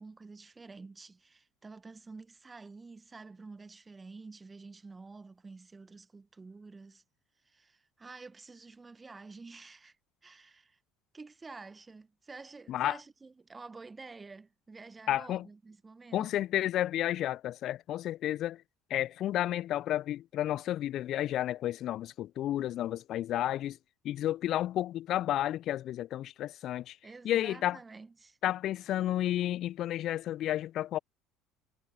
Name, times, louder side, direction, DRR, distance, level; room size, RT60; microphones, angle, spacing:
voice 1, 0.0-7.0 7.4-10.0 10.2-10.8 11.1-16.3 27.0-28.4, right 3 dB, 20° right, 1.2 m, -49 dB
voice 2, 15.1-15.5 16.1-18.6 18.9-23.8 24.0-27.0 27.2-27.8 28.4-31.0, left 13 dB, 55° left, 0.4 m, -31 dB
hypercardioid pair, 65°, 0 cm